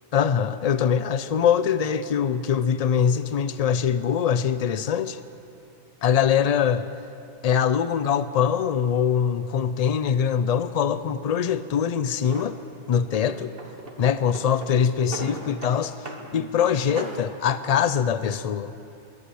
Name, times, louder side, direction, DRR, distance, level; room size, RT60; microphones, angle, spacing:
voice 1, 0.1-5.2 6.0-6.9 7.4-12.6 12.9-13.5 14.0-15.9 16.3-18.7, left 8 dB, 60° left, 13 dB, 0.4 m, -23 dB
Drawer open or close, 12.2-12.5 13.1-14.0 14.3-15.8 16.0-16.3 16.6-17.3, right 2 dB, 55° right, 1.5 m, -37 dB
21.5 x 8.5 x 7.7 m, 2.7 s
omnidirectional pair, 1.2 m